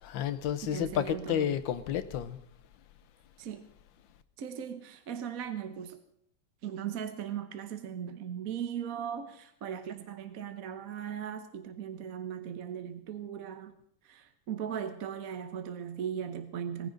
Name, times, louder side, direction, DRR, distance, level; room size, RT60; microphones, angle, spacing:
voice 1, 0.0-2.4, left 10 dB, 75° left, 1.6 m, -31 dB
voice 2, 0.6-1.6 3.4-3.6 4.4-6.0 6.6-13.8 14.0-16.9, right 8 dB, 55° right, 1.2 m, -38 dB
19.5 x 15.0 x 3.9 m
omnidirectional pair, 2.1 m